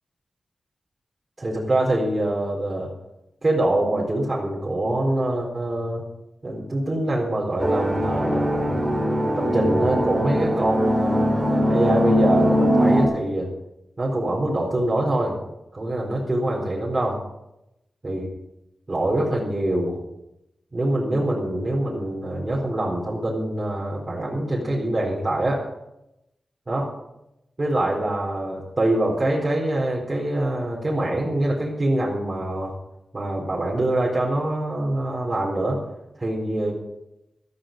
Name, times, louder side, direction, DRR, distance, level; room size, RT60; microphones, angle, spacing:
voice 1, 1.4-2.9 3.4-6.0 6.4-8.8 9.3-13.5 14.0-15.4 15.7-17.2 18.0-18.3 18.9-20.0 20.7-25.7 26.7-26.9 27.6-32.7 33.1-35.8 36.2-36.7, right 1 dB, 35° right, -4 dB, 4.2 m, -24 dB
sound 1, 7.6-13.0, equal, 15° right, 4.2 m, -21 dB
14.5 x 14.0 x 5.3 m, 0.89 s
wide cardioid pair, 80°, 0 cm